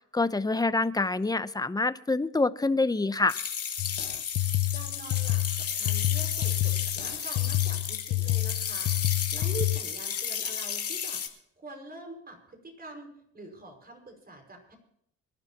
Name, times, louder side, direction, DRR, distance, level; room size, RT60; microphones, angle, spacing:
voice 1, 0.1-3.4, left 3 dB, 15° left, 14 dB, 0.7 m, -26 dB
sound 1, 3.3-11.3, left 7 dB, 50° left, 2.3 m, -33 dB
sound 2, 3.8-9.8, left 20 dB, 70° left, 0.7 m, -28 dB
voice 2, 4.7-8.9 9.3-11.2 11.6-14.8, right 2 dB, 30° right, 4 dB, 5.3 m, -44 dB
25.0 x 11.5 x 2.9 m, 0.73 s
cardioid pair, 90°, 30 cm